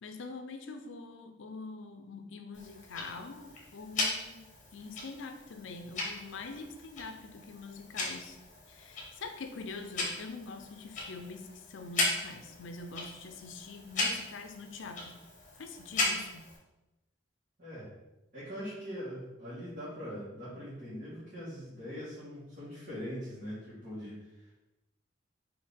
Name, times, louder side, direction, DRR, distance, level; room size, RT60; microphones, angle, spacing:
voice 1, 0.0-8.4 8.7-15.3 15.5-16.5, left 3 dB, 75° left, 7 dB, 0.5 m, -44 dB
Tick-tock, 2.5-16.6, left 2 dB, 40° left, 0.9 m, -38 dB
voice 2, 17.6-17.9 18.3-24.5, equal, 45° right, -11 dB, 1.4 m, -42 dB
4.5 x 2.7 x 3.6 m, 1.0 s
head